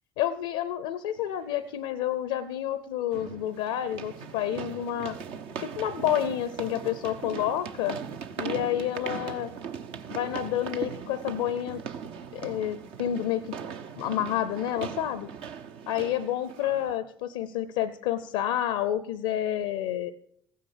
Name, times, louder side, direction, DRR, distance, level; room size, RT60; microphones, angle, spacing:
voice 1, 0.2-5.2 5.6-8.0 8.4-9.5 10.1-11.8 12.3-13.6 14.0-15.3 15.9-20.1, left 11 dB, 80° left, 16 dB, 0.6 m, -29 dB
sound 1, 1.2-1.3 3.1-17.0, right 7 dB, 70° right, 0.9 m, -39 dB
15.0 x 9.4 x 6.7 m, 0.67 s
hypercardioid pair, 50°, 10 cm